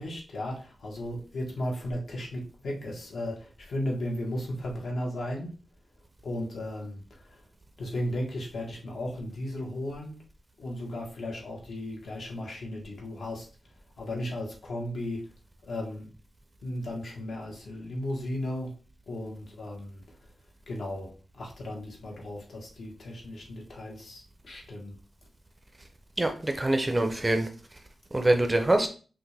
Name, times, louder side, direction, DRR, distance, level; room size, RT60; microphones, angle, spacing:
voice 1, 0.0-5.5 6.2-7.4 7.8-10.1 10.6-13.5 14.0-15.3 15.6-16.1 16.6-18.7 19.1-20.0 20.7-24.9, left 1 dB, 65° left, 1.5 m, -35 dB
voice 2, 26.2-27.5 28.1-28.9, right 1 dB, 15° right, 0.5 m, -24 dB
5.8 x 2.5 x 3.3 m
wide cardioid pair, 165°, 0 cm